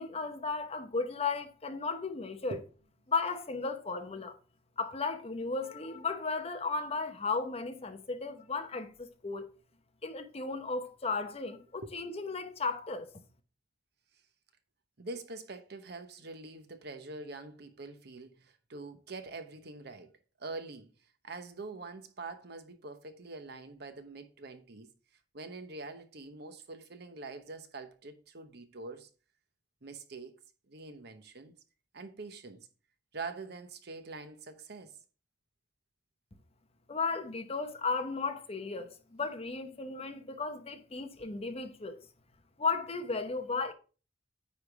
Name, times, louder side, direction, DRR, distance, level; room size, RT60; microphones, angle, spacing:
voice 1, 0.0-2.6 3.1-4.4 4.8-9.5 10.0-13.2 36.9-42.0 42.6-43.7, left 4 dB, 35° left, 0.9 m, -35 dB
voice 2, 15.0-20.1 20.4-20.9 21.2-24.9 25.3-29.1 29.8-30.3 30.7-31.5 31.9-32.6 33.1-35.0, right 3 dB, 60° right, 0.9 m, -44 dB
9.5 x 3.6 x 4.7 m
head